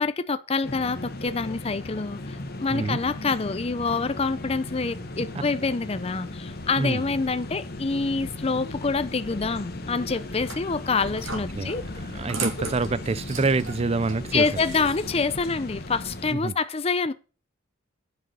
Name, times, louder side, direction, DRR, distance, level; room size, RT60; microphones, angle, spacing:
voice 1, 0.0-11.8 14.3-17.1, left 4 dB, 30° left, 0.5 m, -26 dB
sound 1, 0.6-16.3, left 2 dB, 50° left, 1.4 m, -37 dB
sound 2, 10.1-15.3, right 4 dB, 75° right, 2.8 m, -38 dB
voice 2, 11.5-14.5 16.3-16.5, right 3 dB, 30° right, 0.4 m, -27 dB
9.3 x 6.3 x 6.3 m
head